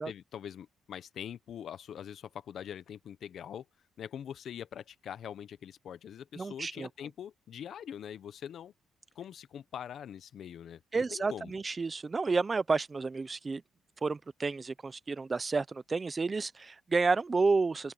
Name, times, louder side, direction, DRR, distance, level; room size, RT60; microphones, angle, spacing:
voice 1, 0.0-3.7 4.0-8.7 9.1-11.5, left 9 dB, 65° left, 1.0 m, -43 dB
voice 2, 6.4-6.9 10.9-13.6 14.0-17.9, right 4 dB, 30° right, 0.8 m, -30 dB
open air
cardioid pair, 90°, 0 cm